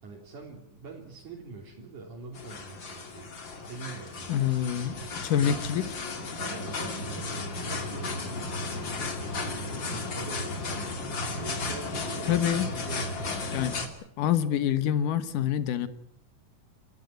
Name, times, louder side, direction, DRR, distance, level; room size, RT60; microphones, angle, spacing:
voice 1, 0.0-3.3 3.7-5.5 6.4-8.7 9.2-9.9 10.1-11.0 11.3-13.4, right 4 dB, 75° right, -1 dB, 4.9 m, -44 dB
sound 1, 2.3-13.9, left 3 dB, 40° left, 2.9 m, -34 dB
voice 2, 4.3-5.0 5.2-6.0 12.3-12.7 13.5-13.8 14.2-15.9, left 10 dB, 85° left, 13 dB, 2.8 m, -26 dB
29.0 x 14.0 x 9.4 m, 0.72 s
omnidirectional pair, 3.6 m